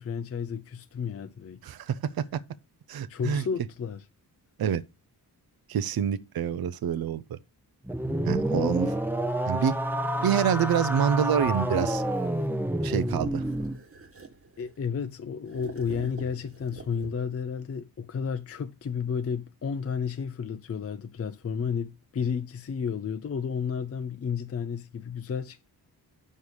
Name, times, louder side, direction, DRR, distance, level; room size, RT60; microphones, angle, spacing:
voice 1, 0.0-1.6 3.1-4.0 14.6-25.7, left 6 dB, 40° left, 0.5 m, -32 dB
voice 2, 1.6-2.4 2.9-3.4 4.6-4.8 5.7-7.4 8.2-8.9 9.5-9.8 10.2-12.0 12.8-13.5, right 8 dB, 65° right, 0.6 m, -27 dB
sound 1, 7.8-13.8, right 1 dB, 5° right, 0.7 m, -28 dB
Bricks sliding, 11.3-12.6 13.4-15.0 15.5-17.4, right 3 dB, 35° right, 1.3 m, -47 dB
6.4 x 5.5 x 4.7 m
cardioid pair, 80°, 39 cm